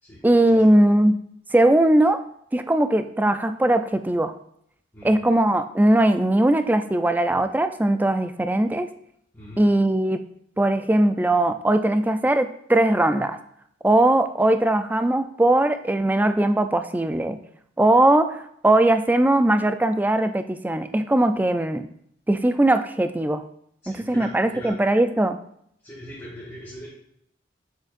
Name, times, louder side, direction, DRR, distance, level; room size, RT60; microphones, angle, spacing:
voice 1, 0.2-1.2 1.5-2.2 2.5-4.3 5.0-8.9 9.6-10.2 10.6-13.4 13.8-17.4 17.8-18.4 18.6-21.9 22.3-23.4 23.9-25.4, right 1 dB, 10° right, 9 dB, 0.3 m, -20 dB
voice 2, 23.8-24.8 25.8-26.9, equal, 15° left, -10 dB, 1.9 m, -40 dB
7.2 x 6.5 x 2.5 m, 0.70 s
head